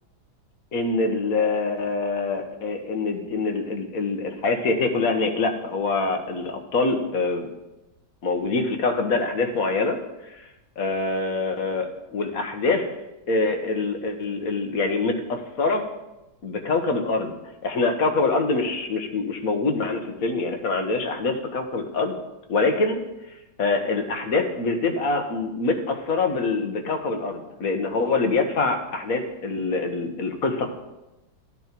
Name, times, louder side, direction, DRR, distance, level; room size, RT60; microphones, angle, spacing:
voice 1, 0.7-7.5 8.2-10.0 10.3-10.4 10.8-12.9 13.3-15.9 16.4-17.3 17.6-22.2 22.5-23.0 23.6-30.7, left 3 dB, 50° left, 5 dB, 1.6 m, -25 dB
12.5 x 9.5 x 4.5 m, 0.98 s
omnidirectional pair, 2.0 m